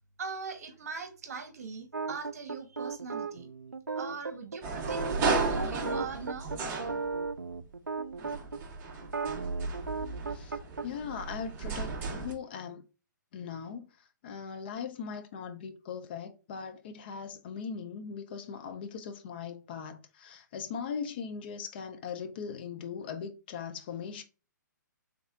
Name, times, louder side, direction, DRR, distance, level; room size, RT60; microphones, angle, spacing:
voice 1, 0.2-3.5 3.9-5.0 5.5-6.6, right 4 dB, 50° right, 0.9 m, -41 dB
sound 1, 1.9-8.6 9.0-10.9, right 4 dB, 80° right, 0.4 m, -36 dB
sound 2, 4.6-7.6 8.1-12.3, right 4 dB, 20° right, 0.6 m, -34 dB
voice 2, 10.3-12.8 13.3-24.2, left 6 dB, 30° left, 0.4 m, -40 dB
3.4 x 3.0 x 3.6 m
figure-of-eight pair, 125°, 10 cm